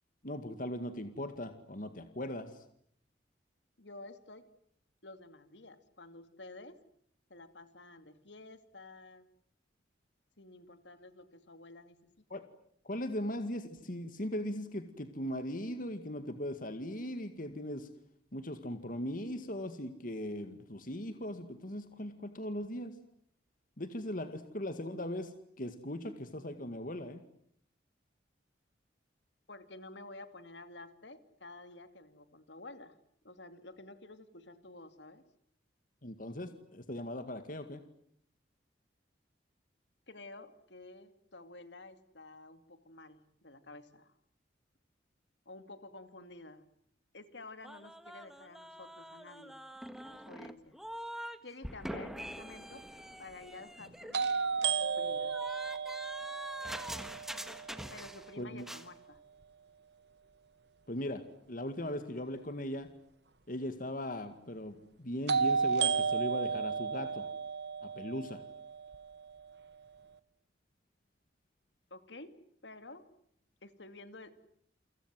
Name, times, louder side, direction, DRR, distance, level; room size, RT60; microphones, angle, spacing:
voice 1, 0.2-2.6 12.3-12.4 12.8-17.9 18.3-23.0 23.8-27.2 36.0-37.8 51.9-52.1 58.4-58.7 60.9-61.2 61.5-62.9 63.5-67.3 67.8-68.4, left 1 dB, 45° left, 9 dB, 2.1 m, -39 dB
voice 2, 3.8-4.5 5.0-6.8 7.3-9.3 10.4-12.1 29.5-33.0 33.2-35.2 40.1-44.1 45.5-46.6 47.1-49.6 50.3-50.8 51.4-52.8 53.2-54.3 54.6-55.3 57.9-59.2 71.9-73.1 73.6-74.3, left 2 dB, 70° left, 10 dB, 2.6 m, -51 dB
sound 1, 47.6-51.4 51.6-58.3 58.6-58.9, equal, ahead, 1.6 m, -44 dB
sound 2, 52.2-52.3 54.1-58.0 65.3-69.3, right 5 dB, 65° right, 1.3 m, -33 dB
29.5 x 26.0 x 7.7 m, 0.67 s
head